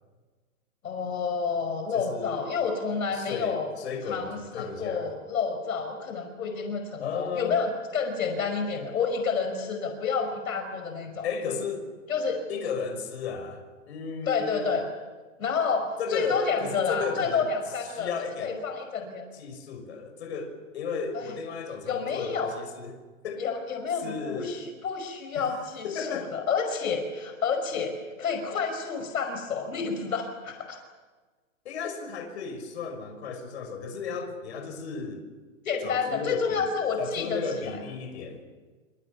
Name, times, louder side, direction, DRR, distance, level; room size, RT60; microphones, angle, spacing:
voice 1, 0.8-3.7 4.1-11.3 12.1-12.4 14.3-14.9 15.4-18.1 18.4-19.2 21.1-21.3 21.9-22.5 23.4-30.8 35.7-37.7, left 5 dB, 75° left, 5 dB, 5.5 m, -29 dB
voice 2, 1.9-2.4 3.1-5.1 7.0-7.6 11.2-11.8 12.5-14.7 16.0-17.5 17.9-18.6 19.3-23.4 24.0-24.6 25.4-25.5 25.8-26.3 31.6-35.2 35.8-36.7 37.0-38.4, left 5 dB, 50° left, 5 dB, 6.1 m, -34 dB
26.5 x 26.0 x 7.3 m, 1.3 s
hypercardioid pair, 175°, 42 cm